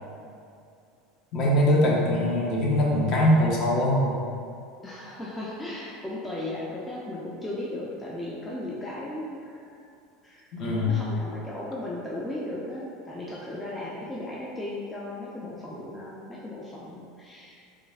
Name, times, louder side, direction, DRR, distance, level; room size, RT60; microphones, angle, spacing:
voice 1, 1.3-4.2 10.5-11.0, left 1 dB, 40° left, -3 dB, 0.7 m, -22 dB
voice 2, 4.8-9.7 10.2-10.5 10.9-17.6, left 1 dB, 10° left, -6 dB, 0.3 m, -36 dB
3.2 x 2.3 x 3.3 m, 2.4 s
supercardioid pair, 155°, 0 cm